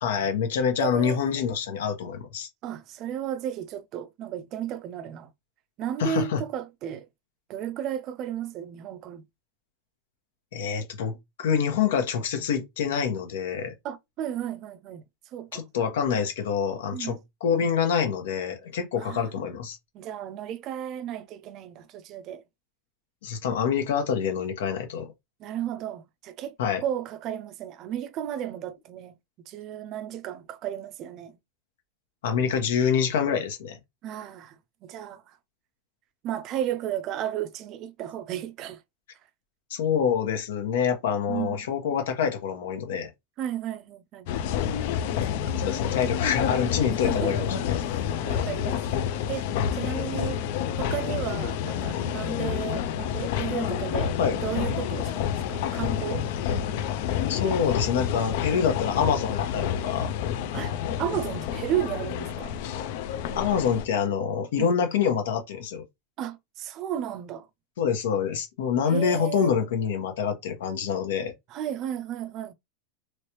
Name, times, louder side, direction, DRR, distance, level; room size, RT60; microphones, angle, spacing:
voice 1, 0.0-2.5 6.0-6.4 10.5-13.7 15.5-19.8 23.2-25.1 26.6-26.8 32.2-33.8 39.7-43.1 45.6-48.0 54.2-54.4 56.4-56.5 57.3-60.1 63.3-65.8 67.8-71.3, left 7 dB, 85° left, 1.1 m, -26 dB
voice 2, 0.8-1.3 2.6-5.3 5.8-7.1 7.5-9.2 13.8-15.0 15.3-15.6 16.9-17.2 19.0-19.3 19.9-22.4 25.4-26.5 26.8-29.1 29.5-31.4 34.0-34.6 34.8-35.2 36.2-38.8 41.3-41.7 43.4-44.3 45.3-46.2 47.0-47.9 48.2-48.8 49.3-49.4 49.7-50.4 50.8-56.3 60.5-60.7 61.0-62.6 64.6-64.8 66.2-67.5 68.9-69.5 71.5-72.5, right 10 dB, 30° right, 0.4 m, -34 dB
sound 1, 44.3-63.9, left 9 dB, 50° left, 0.3 m, -29 dB
3.1 x 3.1 x 3.0 m
supercardioid pair, 170°, 0 cm